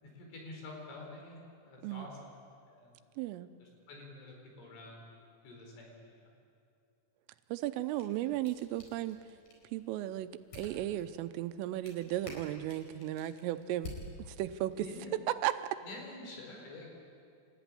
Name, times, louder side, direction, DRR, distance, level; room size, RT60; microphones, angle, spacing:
voice 1, 0.0-2.1 2.7-2.9 3.6-6.3 14.8-15.1 15.8-17.0, left 2 dB, 70° left, 1 dB, 7.1 m, -48 dB
voice 2, 3.2-3.5 7.5-9.2 9.7-13.9 14.3-15.8, right 13 dB, 90° right, 11 dB, 3.4 m, -35 dB
sound 1, 7.7-14.8, left 2 dB, 40° left, 5.5 m, -52 dB
28.5 x 14.5 x 9.9 m, 2.5 s
omnidirectional pair, 5.8 m